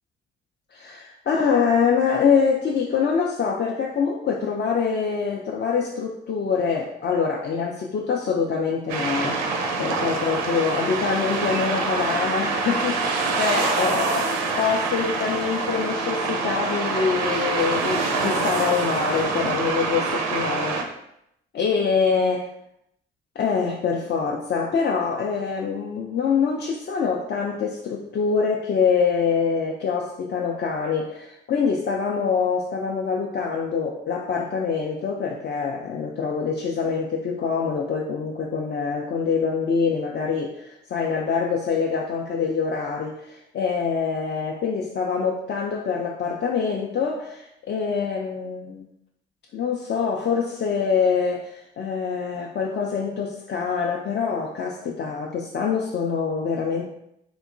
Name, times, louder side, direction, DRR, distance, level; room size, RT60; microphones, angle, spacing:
voice 1, 0.7-9.5 9.8-14.3 14.5-20.8 21.5-22.5 23.4-48.8 49.5-56.9, left 5 dB, 35° left, -1 dB, 0.4 m, -25 dB
sound 1, 8.9-20.8, right 3 dB, 70° right, 0.5 m, -25 dB
2.9 x 2.1 x 2.5 m, 0.78 s
hypercardioid pair, 45°, 29 cm